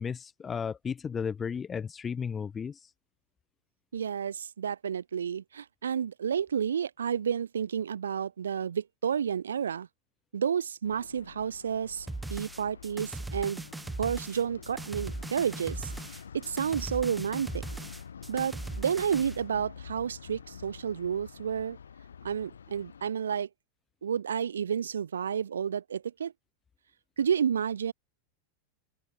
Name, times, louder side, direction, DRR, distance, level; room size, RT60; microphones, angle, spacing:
voice 1, 0.0-2.8, left 6 dB, 20° left, 3.2 m, -34 dB
voice 2, 3.9-9.9 10.3-13.6 14.0-15.9 16.3-17.6 18.3-21.8 22.2-23.5 24.0-26.3 27.2-27.9, right 8 dB, 70° right, 0.5 m, -31 dB
sound 1, 10.8-23.1, left 7 dB, 70° left, 2.0 m, -48 dB
sound 2, 12.1-19.4, right 2 dB, 5° right, 4.8 m, -39 dB
open air
figure-of-eight pair, 90°, 0 cm